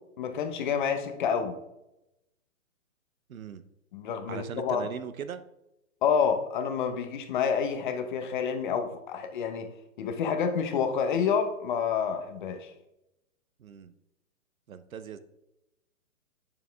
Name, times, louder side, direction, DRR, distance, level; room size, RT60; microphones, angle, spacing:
voice 1, 0.2-1.6 3.9-4.9 6.0-9.7 10.0-12.7, left 6 dB, 35° left, 8 dB, 0.9 m, -28 dB
voice 2, 3.3-3.6 4.3-5.4 13.6-13.9 14.7-15.2, right 8 dB, 80° right, 11 dB, 0.9 m, -39 dB
8.5 x 7.0 x 3.5 m, 0.88 s
hypercardioid pair, 150°, 41 cm